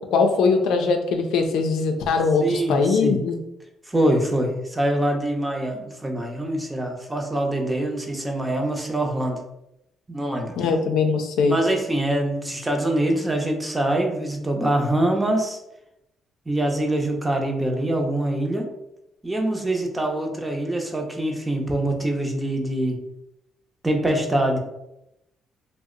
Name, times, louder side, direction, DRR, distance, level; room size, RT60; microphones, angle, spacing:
voice 1, 0.1-3.4 10.6-11.6, left 4 dB, 85° left, 5 dB, 0.4 m, -21 dB
voice 2, 2.4-3.2 3.9-9.4 10.1-10.5 11.5-15.6 16.5-18.7 19.2-23.0 23.8-24.6, right 1 dB, 15° right, 2 dB, 0.6 m, -24 dB
2.7 x 2.1 x 3.7 m, 0.85 s
cardioid pair, 90°, 0 cm